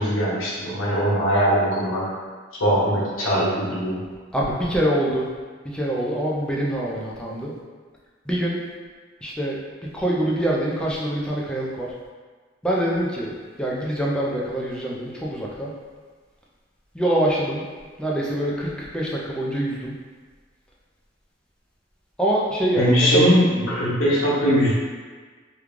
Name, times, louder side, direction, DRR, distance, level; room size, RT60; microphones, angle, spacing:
voice 1, 0.0-2.1 2.6-4.0 22.8-24.7, equal, 80° left, -8 dB, 1.2 m, -20 dB
voice 2, 4.3-5.3 5.6-7.5 8.3-8.6 9.2-9.6 9.9-11.9 12.6-13.3 13.6-15.7 16.9-17.7 18.0-19.9 22.2-23.3, right 1 dB, 5° left, -5 dB, 0.4 m, -24 dB
3.1 x 2.3 x 3.6 m, 1.5 s
head